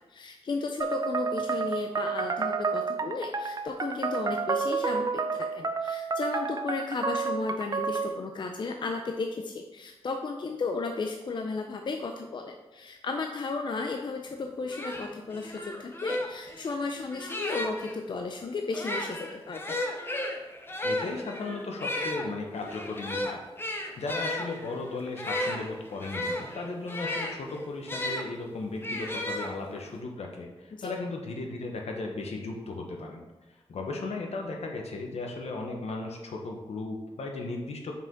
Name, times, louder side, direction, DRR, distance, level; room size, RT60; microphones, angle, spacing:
voice 1, 0.1-19.8 30.7-30.9, left 4 dB, 45° left, 4 dB, 0.5 m, -34 dB
sound 1, 0.8-8.2, right 5 dB, 35° right, 0.5 m, -30 dB
sound 2, 14.3-14.4 14.7-18.0 18.7-28.3 28.8-29.9, left 1 dB, 20° left, 0.8 m, -34 dB
voice 2, 20.8-33.2 33.7-37.9, left 3 dB, 75° left, 2 dB, 1.0 m, -36 dB
5.5 x 5.0 x 3.8 m, 1.1 s
wide cardioid pair, 90°, 11 cm